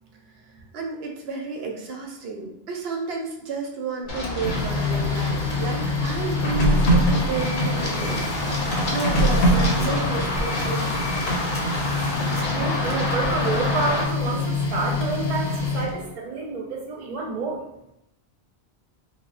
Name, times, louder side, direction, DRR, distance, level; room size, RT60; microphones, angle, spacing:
voice 1, 0.7-11.0, right 4 dB, 75° right, 0 dB, 0.8 m, -32 dB
Printer, 4.1-16.1, left 1 dB, 85° left, 0.9 m, -24 dB
Run, 4.1-14.0, left 1 dB, 55° left, 0.7 m, -29 dB
sound 1, 7.3-7.7 7.9-8.3 10.3-10.7 10.9-11.3, left 4 dB, 20° left, 0.5 m, -38 dB
voice 2, 12.5-17.6, right 3 dB, 45° right, 0 dB, 0.5 m, -29 dB
3.2 x 2.1 x 2.4 m, 0.81 s
omnidirectional pair, 1.1 m